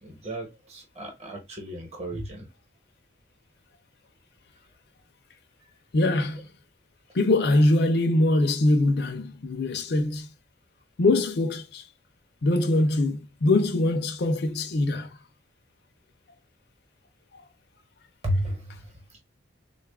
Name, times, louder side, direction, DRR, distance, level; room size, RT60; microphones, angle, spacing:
voice 1, 0.0-2.5 18.2-19.2, equal, 35° right, 1.0 m, -33 dB
voice 2, 5.9-6.5 7.1-10.3 11.0-11.8 12.4-15.1 17.3-17.4, left 2 dB, 55° left, 0.5 m, -23 dB
3.6 x 2.3 x 3.5 m
head